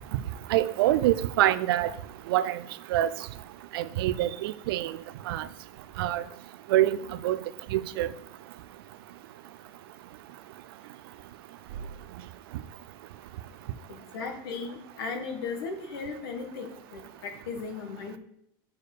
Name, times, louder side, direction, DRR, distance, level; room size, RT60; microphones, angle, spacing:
voice 1, 0.5-1.9 2.3-2.6 2.9-3.1 3.7-5.0 5.3-5.5 6.0-6.2 6.7-7.0 7.2-7.4 7.7-8.1, right 14 dB, 80° right, 0.5 m, -25 dB
voice 2, 13.9-18.2, left 4 dB, 85° left, 1.5 m, -36 dB
6.9 x 4.7 x 4.9 m
supercardioid pair, 130°, 12 cm